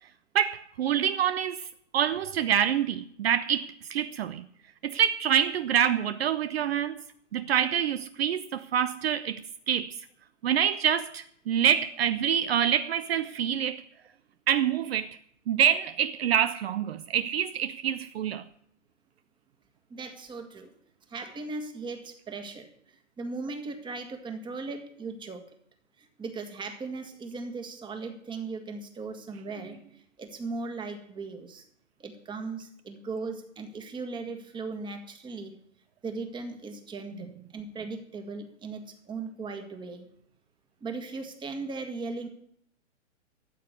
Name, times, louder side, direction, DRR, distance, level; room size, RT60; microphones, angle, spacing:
voice 1, 0.3-4.5 4.8-7.0 7.3-10.1 10.4-13.8 14.5-15.2 15.5-18.4, right 9 dB, 55° right, 0.7 m, -26 dB
voice 2, 19.9-20.7 21.1-25.5 26.0-31.7 32.0-35.5 36.0-40.1 40.8-42.3, right 3 dB, 10° right, 1.7 m, -38 dB
14.0 x 7.6 x 8.2 m
hypercardioid pair, 135°, 37 cm